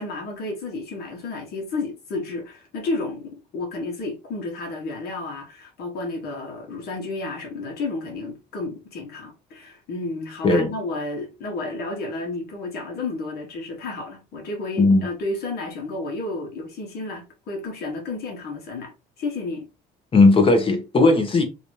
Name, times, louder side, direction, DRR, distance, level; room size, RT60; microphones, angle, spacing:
voice 1, 0.0-19.7, left 3 dB, 70° left, 1.5 m, -31 dB
voice 2, 20.1-21.4, left 3 dB, 30° left, 1.1 m, -16 dB
3.1 x 2.7 x 3.1 m
cardioid pair, 110°, 17 cm